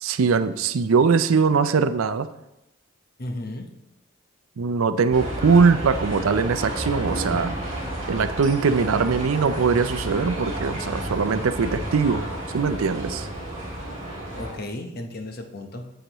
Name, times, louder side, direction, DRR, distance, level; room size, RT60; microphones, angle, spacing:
voice 1, 0.0-2.3 4.6-7.6 8.1-12.3 12.5-13.3, right 5 dB, 80° right, 12 dB, 0.5 m, -21 dB
voice 2, 3.2-3.7 14.3-15.8, left 1 dB, 45° left, 5 dB, 0.9 m, -34 dB
sound 1, 5.1-14.5, right 1 dB, 35° right, 3.2 m, -31 dB
9.9 x 7.9 x 3.0 m, 0.90 s
head